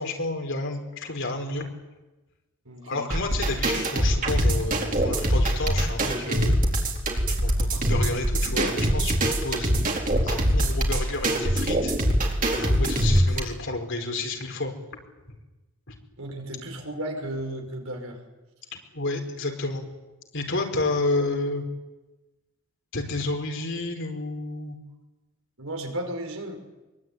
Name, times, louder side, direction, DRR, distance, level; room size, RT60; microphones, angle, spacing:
voice 1, 0.0-1.7 2.9-6.6 7.3-9.7 10.2-11.9 12.6-14.7 15.9-16.0 18.9-19.8 20.3-21.6 22.9-24.8, left 2 dB, 60° left, 3 dB, 4.9 m, -30 dB
voice 2, 2.7-3.0 16.2-18.2 25.6-26.6, right 1 dB, 75° right, 4 dB, 5.6 m, -34 dB
sound 1, 3.1-13.4, right 1 dB, 40° right, 4.3 m, -23 dB
24.5 x 23.0 x 9.6 m, 1.1 s
head